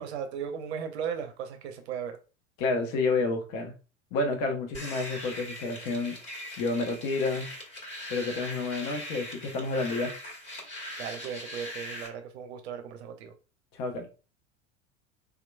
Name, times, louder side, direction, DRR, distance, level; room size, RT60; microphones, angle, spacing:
voice 1, 0.0-2.2 11.0-13.3, right 7 dB, 55° right, 0.6 m, -36 dB
voice 2, 2.6-3.7 4.1-6.2 6.6-7.5 8.1-10.1 13.7-14.1, left 3 dB, 50° left, 0.9 m, -29 dB
sound 1, 4.7-12.1, left 1 dB, 30° left, 1.5 m, -40 dB
3.5 x 2.9 x 2.2 m
figure-of-eight pair, 80°, 38 cm